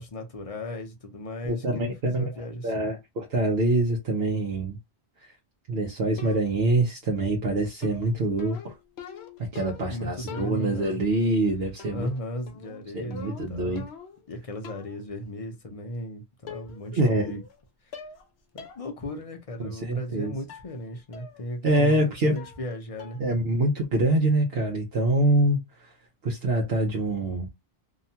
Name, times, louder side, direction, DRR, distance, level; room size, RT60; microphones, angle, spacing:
voice 1, 0.0-2.9 9.9-11.0 11.9-13.9 14.3-17.4 17.8-17.9 18.5-23.2, left 1 dB, 40° left, 0.6 m, -36 dB
voice 2, 1.4-2.2 2.6-4.8 5.7-8.7 9.4-12.1 12.9-13.8 16.9-17.4 19.6-20.3 21.6-22.3 23.2-25.6 26.2-27.5, right 2 dB, 75° right, 0.9 m, -25 dB
sound 1, 6.2-6.7 7.8-10.0 10.3-10.9 11.8-12.2 12.5-14.3 14.6-15.0 16.0-16.1 16.5-16.9 17.2-17.6 17.9-18.3 18.6-18.8 19.2-19.3 20.5-20.7 21.1-21.4 21.7-22.1 22.4-22.7 23.0-23.3, left 6 dB, 90° left, 0.9 m, -43 dB
2.8 x 2.2 x 2.7 m
omnidirectional pair, 1.0 m